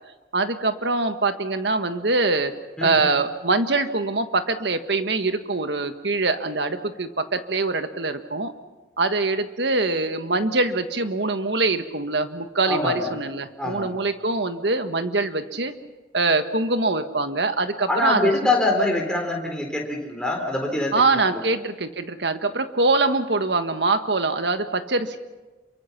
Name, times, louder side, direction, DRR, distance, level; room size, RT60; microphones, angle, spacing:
voice 1, 0.3-2.5 2.8-8.5 9.0-15.7 16.1-18.3 20.9-25.2, right 3 dB, 75° right, 8 dB, 1.5 m, -23 dB
voice 2, 12.7-13.1 13.6-13.9 17.9-21.4, left 2 dB, 5° left, 0 dB, 4.1 m, -24 dB
27.5 x 24.0 x 5.9 m, 1.2 s
head